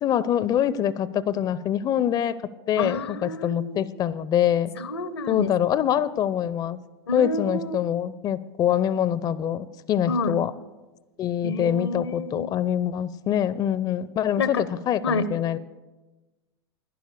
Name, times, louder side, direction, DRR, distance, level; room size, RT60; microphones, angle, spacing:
voice 1, 0.0-2.4 2.7-4.7 5.3-6.8 7.1-10.5 11.2-15.6, left 10 dB, 30° left, 18 dB, 0.4 m, -24 dB
voice 2, 2.8-3.8 4.8-5.5 7.1-7.8 10.1-10.3 11.4-12.5 14.4-14.6 15.0-15.3, left 3 dB, 80° left, 15 dB, 0.7 m, -28 dB
11.5 x 10.5 x 6.6 m, 1.2 s
figure-of-eight pair, 85°, 13 cm